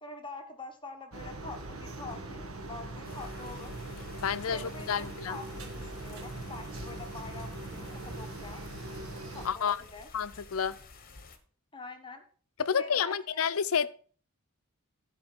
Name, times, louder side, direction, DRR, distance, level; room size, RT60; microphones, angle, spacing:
voice 1, 0.0-3.7 4.4-8.6 9.3-10.1 11.7-12.2 12.7-13.4, left 2 dB, 25° left, 1.2 m, -45 dB
sound 1, 1.1-9.5, right 2 dB, 70° right, 1.5 m, -41 dB
sound 2, 3.0-11.4, left 3 dB, 45° left, 1.3 m, -51 dB
voice 2, 4.2-5.4 9.4-9.8 10.1-10.8 12.6-13.9, left 7 dB, 75° left, 0.6 m, -30 dB
11.5 x 5.3 x 5.9 m
head